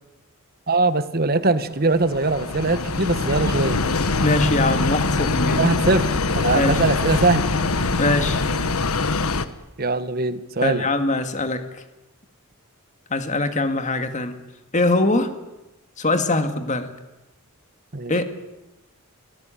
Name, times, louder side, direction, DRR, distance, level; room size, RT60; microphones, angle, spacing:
voice 1, 0.7-3.8 5.5-6.1 6.3-7.4 9.8-10.9 17.9-18.1, right 3 dB, 45° right, 12 dB, 1.4 m, -21 dB
sound 1, 1.8-9.5, left 3 dB, 85° left, 1.3 m, -23 dB
voice 2, 4.2-5.6 6.5-6.8 8.0-8.4 10.6-11.8 13.1-14.4 14.7-15.3 16.0-16.9 18.1-18.2, left 2 dB, 35° left, 8 dB, 2.1 m, -22 dB
28.0 x 18.0 x 9.2 m, 1.0 s
head